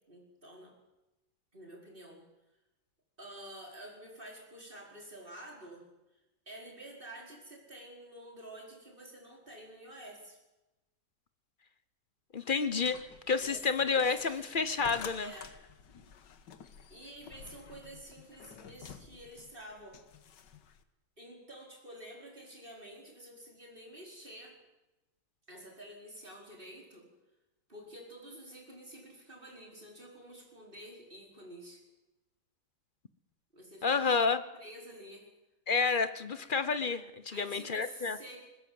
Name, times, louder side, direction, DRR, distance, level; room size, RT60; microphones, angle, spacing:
voice 1, 0.1-0.7 1.5-2.2 3.2-5.8 6.5-10.4 13.4-14.4 15.1-15.5 16.9-20.0 21.2-24.6 25.5-27.1 27.7-31.8 33.5-34.2 34.5-35.3 37.3-38.5, right 1 dB, 30° right, 0 dB, 5.3 m, -49 dB
voice 2, 12.3-15.3 33.8-34.4 35.7-38.2, left 5 dB, 40° left, 12 dB, 0.8 m, -30 dB
sound 1, 12.7-20.8, left 7 dB, 90° left, 1.9 m, -50 dB
21.0 x 20.0 x 7.7 m, 0.99 s
omnidirectional pair, 1.8 m